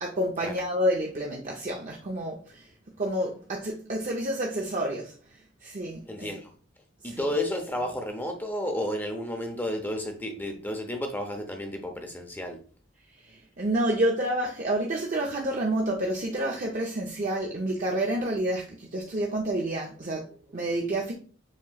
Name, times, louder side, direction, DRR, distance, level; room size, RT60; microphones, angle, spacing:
voice 1, 0.0-6.3 7.0-7.3 13.2-21.1, right 1 dB, 40° right, 0.6 m, -29 dB
voice 2, 6.1-6.5 7.0-12.6, left 1 dB, 10° left, 0.7 m, -32 dB
7.3 x 3.0 x 2.3 m
head